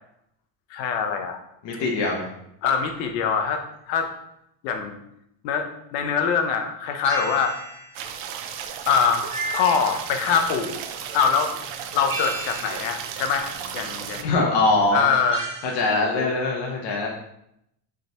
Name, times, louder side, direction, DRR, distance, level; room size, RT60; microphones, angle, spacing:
voice 1, 0.7-1.4 2.6-4.1 4.6-5.0 5.4-7.6 8.9-11.5 11.9-14.3 14.9-15.5, left 6 dB, 85° left, 5 dB, 0.8 m, -24 dB
voice 2, 1.6-2.3 14.2-15.1 15.7-17.1, left 2 dB, 55° left, -1 dB, 1.0 m, -22 dB
sound 1, 7.0-8.0 9.3-10.2 12.1-13.0 15.3-15.9, right 3 dB, 40° right, 1.5 m, -33 dB
sound 2, 7.9-14.2, right 8 dB, 60° right, 0.6 m, -34 dB
3.9 x 3.4 x 2.9 m, 0.77 s
supercardioid pair, 85°, 50 cm